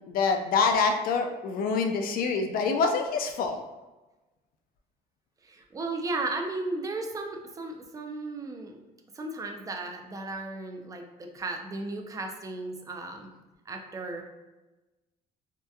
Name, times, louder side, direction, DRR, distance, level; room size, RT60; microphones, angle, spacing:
voice 1, 0.1-3.6, left 4 dB, 60° left, 5 dB, 0.4 m, -26 dB
voice 2, 5.4-8.8 9.2-13.3 13.7-14.2, right 2 dB, 20° right, 3 dB, 0.4 m, -35 dB
2.7 x 2.1 x 2.3 m, 1.1 s
cardioid pair, 110°, 17 cm